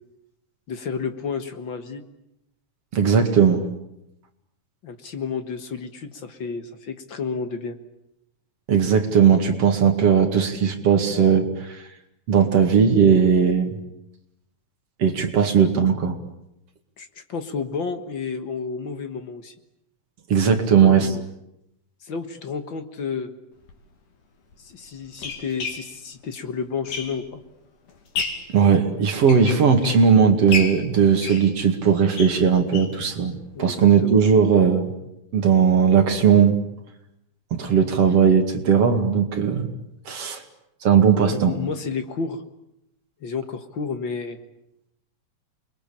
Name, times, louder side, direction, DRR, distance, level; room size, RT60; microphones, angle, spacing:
voice 1, 0.7-2.0 4.8-7.8 17.0-19.5 20.7-21.2 22.0-23.3 24.6-27.4 33.6-34.2 41.3-42.4 43.2-44.4, left 5 dB, 50° left, 8 dB, 1.8 m, -31 dB
voice 2, 2.9-3.6 8.7-11.8 12.3-13.7 15.0-16.2 20.3-21.1 28.5-34.9 35.3-36.6 37.6-39.7 40.1-40.4 40.8-41.5, right 7 dB, 55° right, 5 dB, 3.0 m, -18 dB
sound 1, 23.6-23.7 24.5-27.5 27.9-28.6 29.1-30.1 30.5-33.0 33.4-33.5 33.8-33.9 34.2-34.3, left 5 dB, 85° left, 4.2 m, -32 dB
29.0 x 21.5 x 8.7 m, 0.83 s
omnidirectional pair, 3.5 m